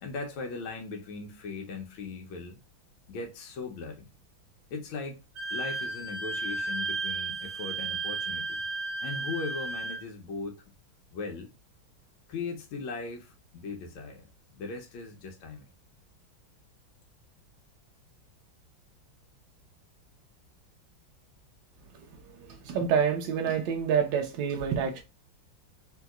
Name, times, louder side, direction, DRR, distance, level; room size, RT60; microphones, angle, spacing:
voice 1, 0.0-2.6 3.1-4.1 4.7-5.2 5.5-8.6 9.0-10.6 11.1-11.5 12.3-15.7, left 4 dB, 85° left, 1.5 m, -39 dB
Wind instrument woodwind instrument, 5.4-10.0, right 3 dB, 55° right, 1.7 m, -33 dB
voice 2, 22.6-25.0, right 7 dB, 70° right, 1.3 m, -27 dB
3.8 x 2.7 x 2.2 m
omnidirectional pair, 2.2 m